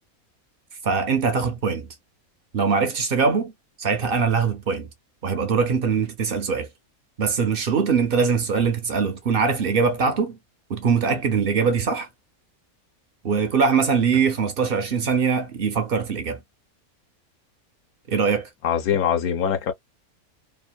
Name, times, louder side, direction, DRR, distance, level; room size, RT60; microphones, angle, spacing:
voice 1, 0.8-1.9 2.5-3.5 3.8-4.9 5.2-6.7 7.2-10.4 10.7-12.1 13.2-16.4 18.1-18.5, right 5 dB, 55° right, 0.6 m, -22 dB
voice 2, 18.6-19.7, left 8 dB, 90° left, 1.3 m, -22 dB
3.0 x 2.4 x 2.3 m
omnidirectional pair, 1.5 m